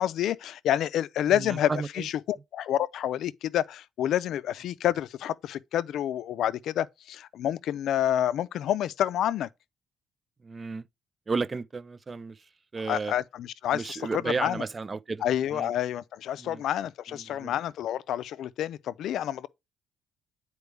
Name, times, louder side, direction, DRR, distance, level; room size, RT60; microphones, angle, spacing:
voice 1, 0.0-9.5 12.9-14.6 15.2-19.5, left 11 dB, 70° left, 0.4 m, -28 dB
voice 2, 1.3-2.1 10.4-10.8 11.3-12.4 12.7-13.1 13.7-15.2 15.5-15.7 16.4-16.6 17.1-17.5, right 4 dB, 25° right, 0.3 m, -33 dB
8.3 x 4.4 x 3.3 m
cardioid pair, 130°, 0 cm